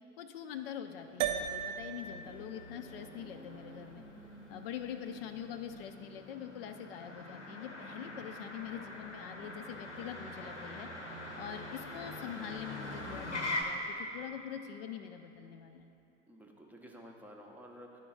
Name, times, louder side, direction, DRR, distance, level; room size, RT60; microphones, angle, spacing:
voice 1, 0.2-4.0 4.5-10.9 11.4-15.9, left 9 dB, 55° left, 8 dB, 0.4 m, -44 dB
Motor vehicle (road), 0.5-13.6, left 2 dB, 90° left, 0.8 m, -44 dB
sound 1, 1.2-5.8, right 8 dB, 65° right, 0.5 m, -40 dB
voice 2, 16.3-18.0, equal, 5° right, -1 dB, 0.6 m, -52 dB
10.5 x 3.8 x 3.8 m, 2.8 s
figure-of-eight pair, 80°, 34 cm